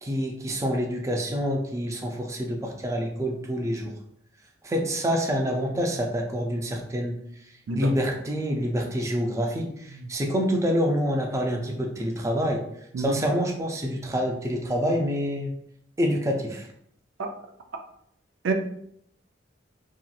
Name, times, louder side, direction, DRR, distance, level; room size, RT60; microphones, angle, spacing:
voice 1, 0.0-3.9 4.6-7.2 7.7-12.6 13.0-15.5 16.0-16.7, equal, 15° right, 1 dB, 0.4 m, -27 dB
voice 2, 7.7-7.9 12.9-13.1 17.2-17.3 18.4-18.5, right 3 dB, 80° right, 5 dB, 0.4 m, -26 dB
2.9 x 2.8 x 2.3 m, 0.70 s
head